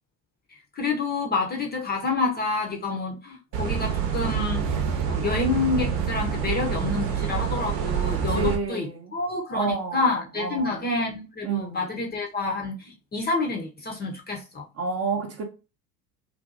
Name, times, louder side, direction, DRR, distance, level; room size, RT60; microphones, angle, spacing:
voice 1, 0.7-4.6 5.1-14.7, left 3 dB, 20° left, 0.6 m, -28 dB
sound 1, 3.5-8.6, right 7 dB, 65° right, 0.8 m, -27 dB
voice 2, 8.3-9.1 9.5-10.1 10.4-10.8 11.4-11.9 14.8-15.4, right 4 dB, 30° right, 0.6 m, -29 dB
2.6 x 2.5 x 2.4 m
hypercardioid pair, 65°, 48 cm